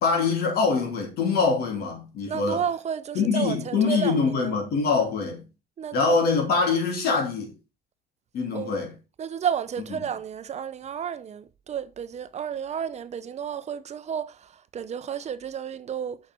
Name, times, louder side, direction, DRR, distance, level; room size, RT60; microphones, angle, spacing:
voice 1, 0.0-2.6 3.1-5.4 5.9-7.5 8.3-8.9, left 4 dB, 70° left, 3.0 m, -24 dB
voice 2, 2.3-4.5 5.8-6.2 8.5-8.8 9.2-16.2, right 8 dB, 40° right, 0.6 m, -32 dB
6.4 x 6.0 x 4.5 m
cardioid pair, 110°, 17 cm